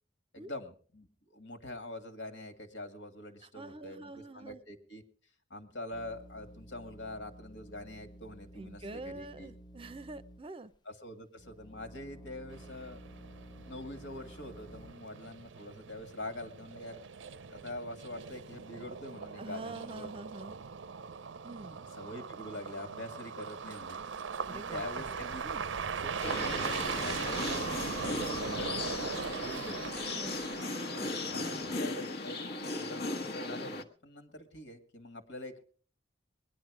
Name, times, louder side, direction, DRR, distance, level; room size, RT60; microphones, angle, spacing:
voice 1, 0.3-5.0 5.5-9.5 10.9-13.0 13.7-17.0 17.5-20.1 22.0-24.0 24.5-25.4 26.0-27.8 28.4-28.9 29.4-29.9 31.3-32.4 32.7-35.6, left 1 dB, 75° left, 8 dB, 2.2 m, -44 dB
voice 2, 3.4-4.6 8.5-10.7 19.4-20.6 21.4-21.8 24.5-25.1 25.4-25.7 28.0-28.4 30.1-30.5 31.0-31.7, right 2 dB, 30° right, 14 dB, 0.6 m, -46 dB
sound 1, 5.9-10.8 11.4-14.9, equal, 25° left, 0.7 m, -52 dB
sound 2, 12.5-31.8, right 6 dB, 90° right, 0.6 m, -40 dB
sound 3, 26.2-33.8, left 3 dB, 60° left, 1.3 m, -37 dB
20.5 x 10.5 x 4.9 m, 0.43 s
head